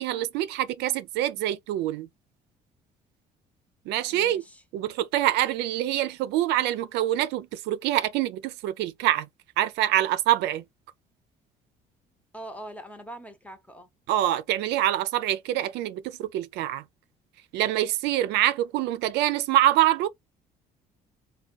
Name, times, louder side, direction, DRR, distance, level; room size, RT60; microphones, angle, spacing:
voice 1, 0.0-2.1 3.9-4.4 4.7-9.3 9.6-10.6 14.1-16.8 17.5-20.1, right 13 dB, 85° right, 0.5 m, -25 dB
voice 2, 4.1-4.6 12.3-13.9, right 1 dB, 10° left, 0.8 m, -42 dB
3.4 x 2.3 x 2.4 m
cardioid pair, 110°, 17 cm